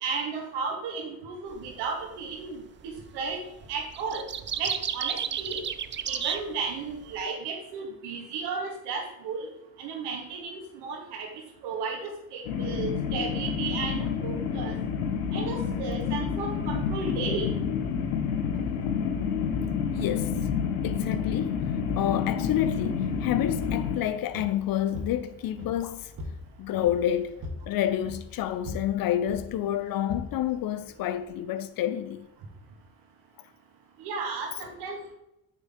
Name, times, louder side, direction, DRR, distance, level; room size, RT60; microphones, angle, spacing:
voice 1, 0.0-3.4 3.7-4.2 4.6-5.6 6.1-9.5 9.8-11.3 11.6-14.8 15.3-17.5 34.0-35.1, right 4 dB, 70° right, 1.7 m, -34 dB
sound 1, 1.5-1.7 2.9-3.3 3.6-7.2, right 8 dB, 30° right, 0.5 m, -32 dB
sound 2, 12.5-24.0, left 7 dB, 75° left, 1.0 m, -29 dB
voice 2, 19.9-20.4 20.8-26.1 26.6-27.4 27.7-32.3, left 11 dB, 55° left, 0.6 m, -29 dB
sound 3, 22.7-31.3, left 1 dB, 50° right, 1.7 m, -42 dB
6.6 x 6.0 x 3.7 m
hypercardioid pair, 45°, 42 cm